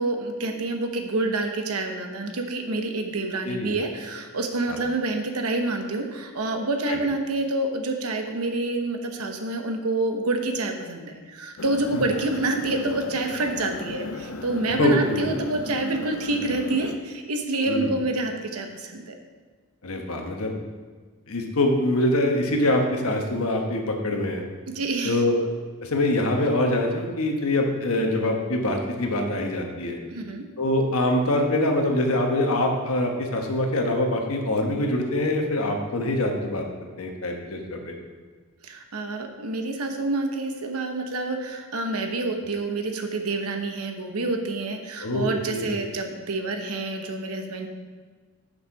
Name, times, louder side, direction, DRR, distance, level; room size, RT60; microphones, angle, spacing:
voice 1, 0.0-19.2 24.7-25.2 30.1-30.4 38.6-47.7, right 2 dB, 85° right, 4 dB, 1.0 m, -27 dB
voice 2, 3.2-3.8 4.7-4.8 6.9-7.0 11.9-12.0 14.8-15.4 17.7-17.9 19.8-20.5 21.3-24.4 25.0-25.5 25.8-30.0 30.6-36.6 37.0-37.9 45.0-45.7, left 1 dB, 80° left, 2 dB, 1.2 m, -24 dB
sound 1, 11.6-17.0, left 2 dB, 60° left, 0.5 m, -36 dB
6.6 x 6.2 x 5.7 m, 1.5 s
head